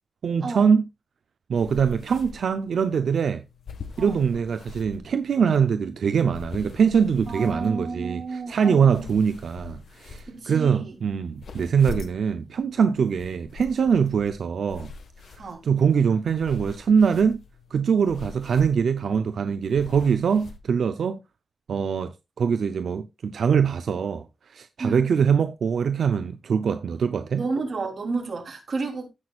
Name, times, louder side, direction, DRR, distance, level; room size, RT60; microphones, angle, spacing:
voice 1, 0.2-0.8 1.5-3.4 4.0-14.9 15.3-17.4 17.7-21.2 21.7-22.1 22.4-24.3 24.5-27.4, right 6 dB, 80° right, 0.6 m, -23 dB
sound 1, 1.5-20.6, left 4 dB, 80° left, 1.5 m, -43 dB
voice 2, 7.3-9.0 10.3-11.0 15.4-15.6 24.8-25.1 27.4-29.1, right 3 dB, 50° right, 3.3 m, -31 dB
16.0 x 6.1 x 2.4 m
wide cardioid pair, 145°, 0 cm